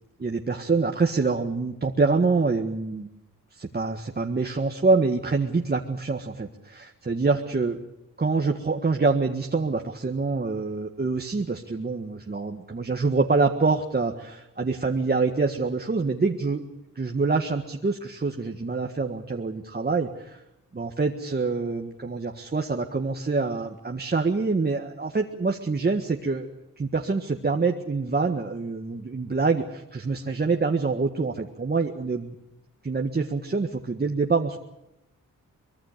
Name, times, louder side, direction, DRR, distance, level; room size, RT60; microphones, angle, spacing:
voice 1, 0.2-3.1 3.5-7.9 8.2-16.6 16.9-20.4 20.7-32.3 32.8-34.6, right 4 dB, 30° right, 2 dB, 1.7 m, -26 dB
24.0 x 21.5 x 6.7 m, 0.89 s
cardioid pair, 80°, 32 cm